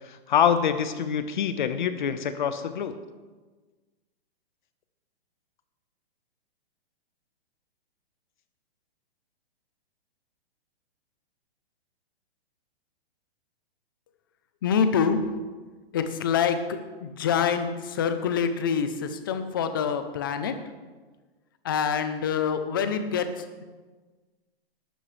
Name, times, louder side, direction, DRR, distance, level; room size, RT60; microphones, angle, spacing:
voice 1, 0.0-3.0, left 8 dB, 50° left, 10 dB, 1.1 m, -25 dB
voice 2, 14.6-15.2 15.9-16.6 17.0-20.6 21.6-23.3, left 7 dB, 20° left, 9 dB, 0.6 m, -25 dB
19.0 x 11.5 x 3.3 m, 1.3 s
hypercardioid pair, 175°, 31 cm